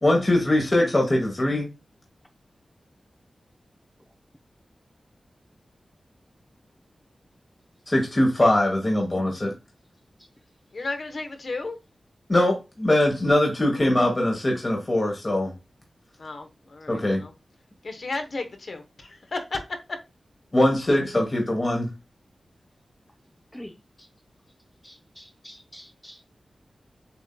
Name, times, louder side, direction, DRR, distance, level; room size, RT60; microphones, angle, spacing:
voice 1, 0.0-1.7 7.9-9.5 12.3-15.5 16.9-17.2 20.5-21.9, left 1 dB, 35° left, 1.1 m, -22 dB
voice 2, 10.7-11.8 16.2-17.3 17.8-19.6, left 3 dB, 60° left, 0.9 m, -33 dB
voice 3, 23.5-24.1 24.8-26.3, equal, 10° left, 0.5 m, -46 dB
6.9 x 2.7 x 2.2 m
cardioid pair, 65°, 0 cm